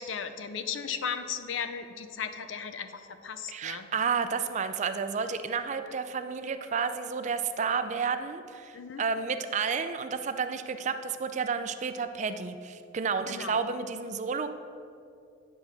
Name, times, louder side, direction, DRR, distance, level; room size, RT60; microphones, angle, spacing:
voice 1, 0.0-3.9 8.7-9.0 13.3-13.6, left 7 dB, 70° left, 10 dB, 0.5 m, -36 dB
voice 2, 3.5-14.5, right 5 dB, 35° right, 10 dB, 0.4 m, -31 dB
9.2 x 3.5 x 6.6 m, 2.4 s
head